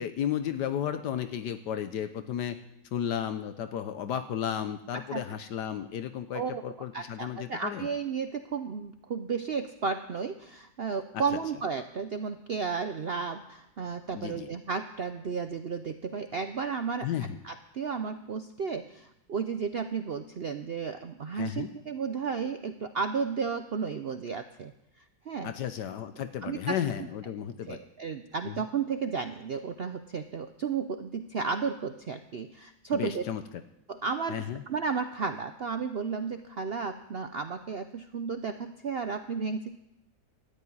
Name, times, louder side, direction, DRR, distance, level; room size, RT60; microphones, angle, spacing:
voice 1, 0.0-2.6 2.9-7.9 11.1-11.2 14.1-14.5 17.0-17.4 21.3-21.7 25.4-27.8 28.4-28.6 32.9-33.4 34.3-34.6, left 9 dB, 75° left, 10 dB, 1.3 m, -33 dB
voice 2, 6.9-17.1 17.4-24.7 25.3-25.5 26.4-26.7 27.7-33.2 33.9-39.8, right 5 dB, 65° right, 8 dB, 0.6 m, -33 dB
13.5 x 8.3 x 9.5 m, 0.83 s
omnidirectional pair, 1.8 m